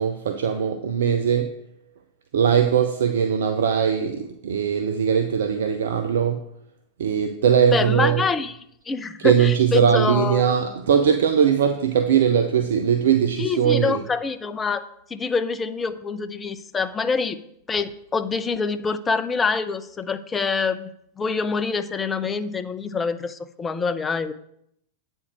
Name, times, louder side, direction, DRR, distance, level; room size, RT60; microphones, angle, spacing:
voice 1, 0.0-1.6 2.3-6.4 7.0-8.3 9.2-14.0, right 7 dB, 60° right, 0.6 m, -20 dB
voice 2, 7.7-8.5 8.9-10.4 13.4-14.8 15.1-17.4 17.7-20.9 21.2-24.3, left 4 dB, 15° left, 0.6 m, -25 dB
8.5 x 4.5 x 6.4 m
figure-of-eight pair, 90°, 0 cm